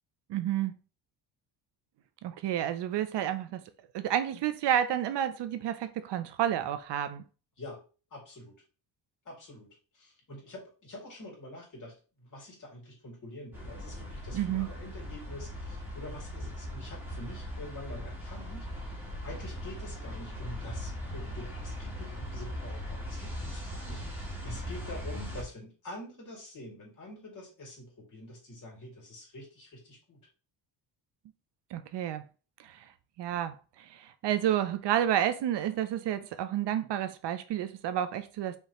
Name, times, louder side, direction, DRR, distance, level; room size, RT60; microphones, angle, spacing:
voice 1, 0.3-0.7 2.2-3.6 3.9-7.2 14.3-14.7 31.7-32.2 32.6-32.8 33.2-38.6, right 11 dB, 65° right, 0.6 m, -30 dB
voice 2, 7.6-8.6 9.2-18.9 19.2-30.2, left 1 dB, 40° left, 2.7 m, -46 dB
sound 1, 13.5-25.4, equal, 5° right, 1.7 m, -39 dB
5.6 x 3.0 x 3.0 m
cardioid pair, 115°, 45 cm